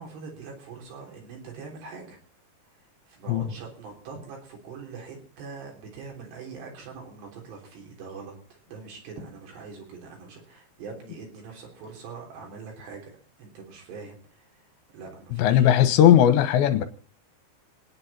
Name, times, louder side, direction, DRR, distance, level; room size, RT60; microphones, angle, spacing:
voice 1, 0.0-2.2 3.1-13.1 13.4-14.5 14.9-15.7, right 5 dB, 65° right, 1 dB, 5.5 m, -42 dB
voice 2, 15.3-16.9, left 10 dB, 80° left, 10 dB, 3.3 m, -18 dB
29.0 x 10.0 x 4.2 m, 0.43 s
omnidirectional pair, 5.3 m